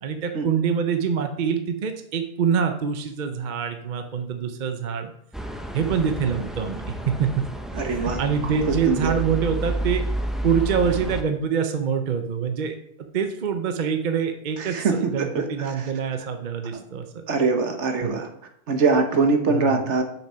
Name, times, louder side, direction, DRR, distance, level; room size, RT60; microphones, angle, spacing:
voice 1, 0.0-5.1 5.7-7.3 7.9-10.0 10.4-12.8 13.1-17.2 18.0-18.1 19.5-19.8, right 7 dB, 45° right, 7 dB, 0.8 m, -25 dB
sound 1, 5.3-11.2, right 1 dB, ahead, 0.3 m, -30 dB
voice 2, 7.7-8.2 8.6-9.1 14.6-15.9 16.7-16.8 17.3-18.3 18.7-20.0, right 4 dB, 65° right, 5 dB, 1.4 m, -23 dB
6.2 x 6.0 x 5.6 m, 0.71 s
omnidirectional pair, 1.3 m